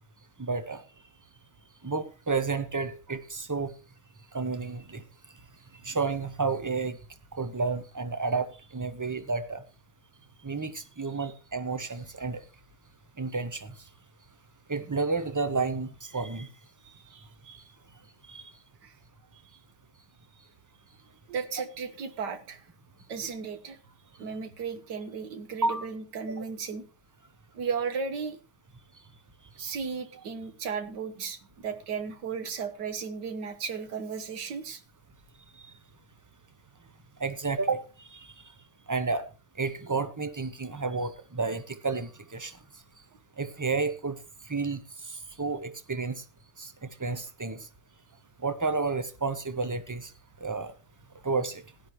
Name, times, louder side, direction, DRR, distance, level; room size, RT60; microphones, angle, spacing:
voice 1, 0.4-0.8 1.8-3.7 4.3-5.0 5.8-7.0 7.3-8.5 8.7-9.6 10.4-12.4 13.2-13.7 14.7-16.5 18.3-18.4 25.6-25.9 26.3-26.4 37.2-38.3 38.9-39.2 39.6-42.5 43.4-44.2 44.5-44.8 45.1-46.2 46.6-46.7 47.0-47.6 48.4-50.1 50.4-50.7 51.2-51.6, right 4 dB, 20° right, 0.6 m, -31 dB
voice 2, 16.8-17.6 18.8-18.9 21.3-22.6 23.1-23.8 24.2-26.8 27.5-28.4 29.6-34.8, right 6 dB, 90° right, 2.0 m, -35 dB
17.0 x 11.0 x 3.1 m
omnidirectional pair, 1.8 m